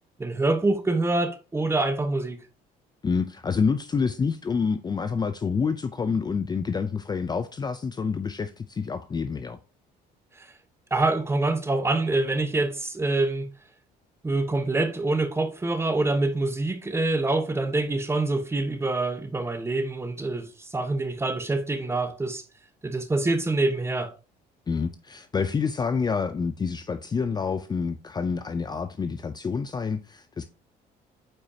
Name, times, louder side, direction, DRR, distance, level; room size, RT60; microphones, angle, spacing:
voice 1, 0.2-2.4 10.4-10.5 10.9-13.5 14.2-22.4 22.8-24.1, right 2 dB, 15° right, 1.1 m, -25 dB
voice 2, 3.0-9.6 24.7-30.4, left 5 dB, 25° left, 0.5 m, -28 dB
8.8 x 4.9 x 2.8 m
cardioid pair, 110°, 17 cm